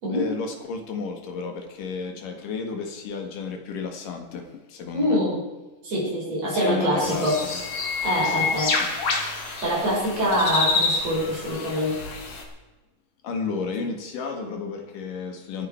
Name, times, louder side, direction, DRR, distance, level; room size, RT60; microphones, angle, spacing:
voice 1, 0.1-5.2 6.4-7.6 8.4-8.9 13.2-15.7, left 4 dB, 70° left, 4 dB, 3.3 m, -33 dB
voice 2, 4.9-5.4 5.8-7.4 8.0-8.8 9.4-12.0, equal, 45° right, -3 dB, 6.1 m, -24 dB
sound 1, 7.0-12.4, left 4 dB, 50° left, 3.4 m, -28 dB
26.5 x 10.0 x 4.5 m, 1.1 s
omnidirectional pair, 3.9 m